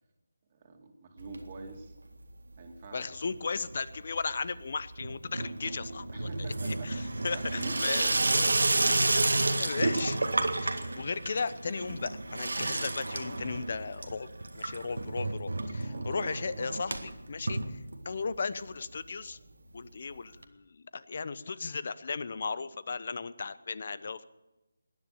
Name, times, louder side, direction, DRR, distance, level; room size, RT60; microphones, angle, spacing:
voice 1, 0.5-2.0 2.6-3.2 3.6-3.7 6.1-6.9 7.3-9.0 15.8-16.1, right 3 dB, 30° right, 3 dB, 2.6 m, -44 dB
Water tap faucet / Sink (filling or washing), 1.2-2.0 2.2-2.8 3.1-18.4 18.7-18.8 19.0-19.1 19.3-19.4 20.4-20.5, right 2 dB, 85° right, 1.9 m, -31 dB
voice 2, 2.9-8.1 9.6-10.2 10.6-14.3 14.5-17.8 18.0-19.4 19.7-24.2, left 4 dB, 45° left, 16 dB, 0.9 m, -36 dB
19.5 x 10.5 x 7.0 m, 1.0 s
figure-of-eight pair, 165°, 0 cm